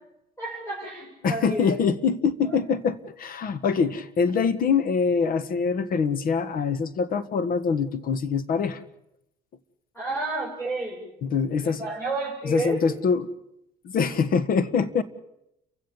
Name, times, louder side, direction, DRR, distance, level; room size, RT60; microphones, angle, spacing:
voice 1, 0.4-1.8 2.4-2.6 9.9-11.1 11.6-12.8, right 2 dB, 15° left, -3 dB, 7.1 m, -31 dB
voice 2, 1.2-8.8 11.2-11.8 12.4-13.3 13.8-15.0, left 5 dB, 60° left, 13 dB, 1.6 m, -24 dB
30.0 x 16.0 x 7.3 m, 0.85 s
cardioid pair, 110°, 17 cm